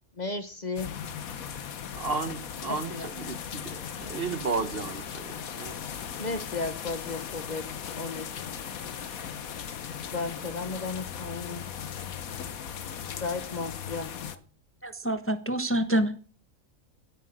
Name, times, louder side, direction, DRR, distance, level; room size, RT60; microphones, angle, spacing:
voice 1, 0.2-0.9 2.7-3.1 6.2-8.4 10.1-11.7 13.2-14.1, left 3 dB, 35° left, 1.2 m, -34 dB
sound 1, 0.8-14.4, left 8 dB, 80° left, 1.5 m, -38 dB
voice 2, 1.9-5.8, right 4 dB, 45° right, 1.2 m, -34 dB
voice 3, 14.8-16.2, right 1 dB, 10° left, 1.0 m, -27 dB
16.5 x 9.4 x 6.3 m
omnidirectional pair, 1.5 m